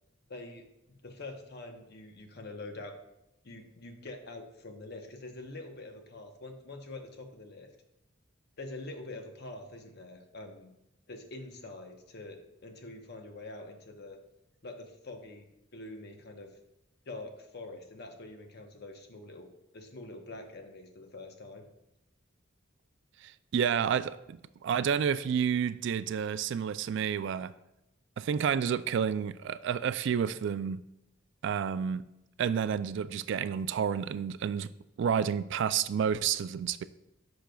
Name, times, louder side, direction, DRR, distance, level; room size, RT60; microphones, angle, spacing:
voice 1, 0.3-0.7 1.0-2.9 3.4-7.7 8.6-10.7 11.1-14.2 14.6-16.5 17.1-19.5 19.7-21.6, left 2 dB, 55° left, 4 dB, 1.0 m, -45 dB
voice 2, 23.2-27.5 28.2-30.8 31.4-32.0 32.4-34.7 35.0-36.8, right 7 dB, 65° right, 15 dB, 0.3 m, -30 dB
10.0 x 6.1 x 2.3 m, 0.88 s
head